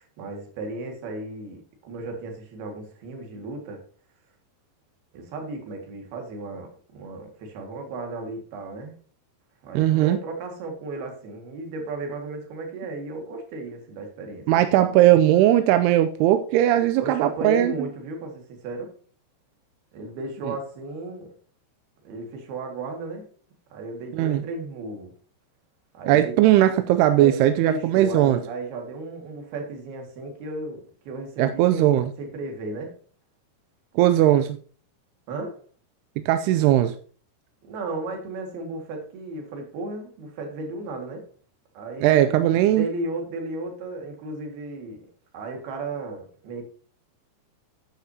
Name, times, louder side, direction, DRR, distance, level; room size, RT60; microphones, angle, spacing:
voice 1, 0.0-3.8 5.1-8.9 9.6-14.5 17.0-18.9 19.9-21.3 22.1-23.3 23.7-25.1 25.9-26.4 27.2-32.9 35.3-35.6 37.6-41.3 41.8-45.0 45.3-46.7, right 2 dB, 65° right, 3 dB, 3.8 m, -34 dB
voice 2, 9.7-10.2 14.5-17.9 24.1-24.4 26.1-28.4 31.4-32.1 34.0-34.6 36.3-37.0 42.0-42.9, right 13 dB, 80° right, 9 dB, 2.5 m, -19 dB
10.5 x 9.5 x 2.8 m, 0.42 s
omnidirectional pair, 4.9 m